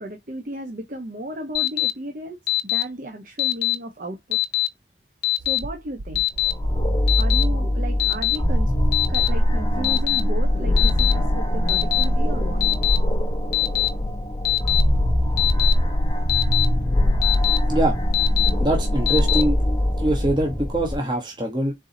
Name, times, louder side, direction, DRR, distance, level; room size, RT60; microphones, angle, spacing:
voice 1, 0.0-2.4 2.6-4.4 5.5-6.2 7.2-8.7 9.1-12.6, right 1 dB, 45° right, 0.9 m, -34 dB
Alarm, 1.5-1.9 2.5-2.8 3.4-3.7 4.3-4.7 5.2-5.6 6.1-6.5 7.1-7.4 8.0-8.4 8.9-9.3 9.8-10.2 10.8-11.1 11.7-12.0 12.6-13.0 13.5-13.9 14.4-14.8 15.4-15.7 16.3-16.6 17.2-17.6 18.1-18.5 19.1-19.4, left 18 dB, 60° left, 0.9 m, -21 dB
sound 1, 5.3-6.5 7.7-8.0 8.2-8.5, right 1 dB, 70° right, 0.6 m, -39 dB
sound 2, 6.4-20.9, left 1 dB, 25° left, 0.9 m, -22 dB
voice 2, 18.6-19.6 20.0-21.7, right 1 dB, 25° right, 1.1 m, -23 dB
4.6 x 4.0 x 2.6 m
head